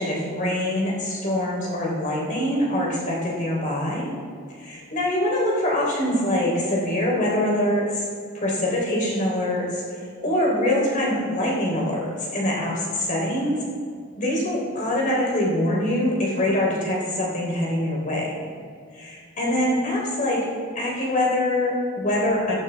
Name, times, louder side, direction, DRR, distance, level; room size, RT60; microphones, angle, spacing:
voice 1, 0.0-4.1 4.6-8.0 8.3-13.6 14.2-18.4 18.9-20.5 20.8-22.5, left 1 dB, 35° left, -3 dB, 3.5 m, -24 dB
15.0 x 14.0 x 3.4 m, 2.1 s
head